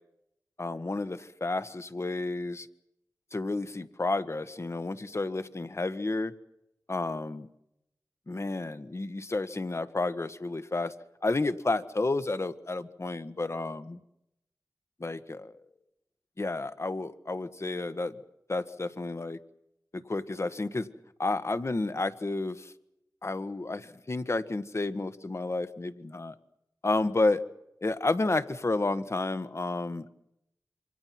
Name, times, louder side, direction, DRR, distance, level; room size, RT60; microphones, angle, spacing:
voice 1, 0.6-2.7 3.3-6.3 6.9-7.5 8.3-10.9 11.2-14.0 15.0-15.5 16.4-18.2 18.5-19.4 19.9-20.9 21.2-22.7 23.2-26.4 26.8-27.4 27.8-30.1, left 2 dB, 40° left, 12 dB, 1.5 m, -31 dB
27.5 x 25.0 x 6.0 m, 0.84 s
wide cardioid pair, 60°, 7 cm